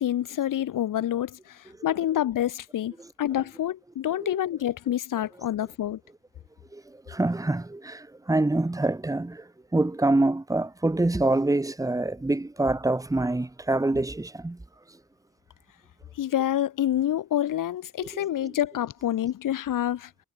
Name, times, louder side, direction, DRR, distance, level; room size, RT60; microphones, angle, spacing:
voice 1, 0.0-2.9 3.2-6.0 16.2-20.1, left 11 dB, 75° left, 6.2 m, -27 dB
voice 2, 6.7-14.6 18.1-18.6, right 2 dB, 10° right, 7.5 m, -26 dB
wide cardioid pair, 170°, 32 cm